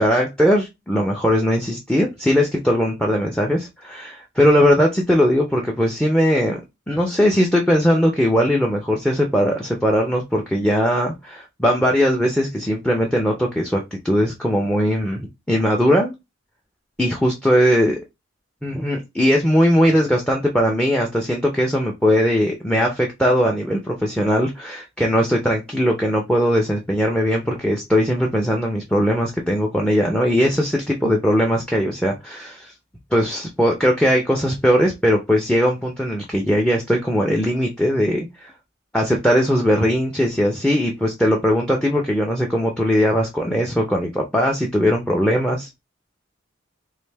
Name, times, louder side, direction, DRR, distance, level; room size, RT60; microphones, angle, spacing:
voice 1, 0.0-6.6 6.9-16.1 17.0-17.9 18.6-32.7 33.1-38.5 38.9-45.7, equal, 5° left, 0.4 m, -19 dB
3.2 x 2.6 x 3.3 m
head